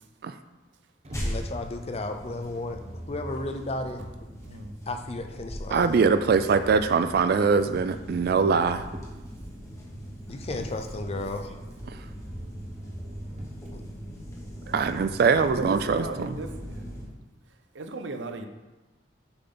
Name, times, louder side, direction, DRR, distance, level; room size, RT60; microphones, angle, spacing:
Motor vehicle (road), 1.0-4.5 5.8-9.3 10.4-13.7 14.6-15.0, equal, 35° right, 1.0 m, -45 dB
sound 1, 1.1-17.1, equal, 15° left, 1.2 m, -40 dB
voice 1, 1.2-2.8 3.1-4.0 4.9-5.9 10.3-11.5 13.7-13.8, left 2 dB, 35° left, 0.5 m, -33 dB
voice 2, 4.5-4.8 10.6-10.7 15.5-16.9 17.7-18.5, right 2 dB, 80° right, 0.6 m, -36 dB
voice 3, 5.7-8.9 14.7-16.0, right 5 dB, 55° right, 0.3 m, -22 dB
6.9 x 5.7 x 3.9 m
head